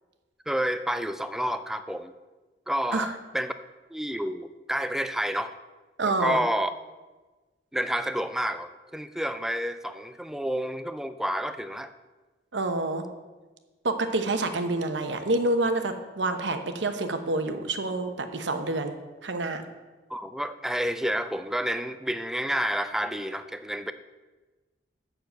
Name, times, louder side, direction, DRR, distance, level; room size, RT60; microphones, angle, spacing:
voice 1, 0.5-2.1 2.7-3.5 3.9-5.5 6.0-6.7 7.7-11.9 20.1-23.9, equal, ahead, 10 dB, 0.3 m, -29 dB
voice 2, 6.0-6.4 12.5-13.1 13.8-18.9 19.2-19.6, right 2 dB, 80° right, 7 dB, 1.0 m, -27 dB
7.3 x 6.5 x 7.8 m, 1.3 s
head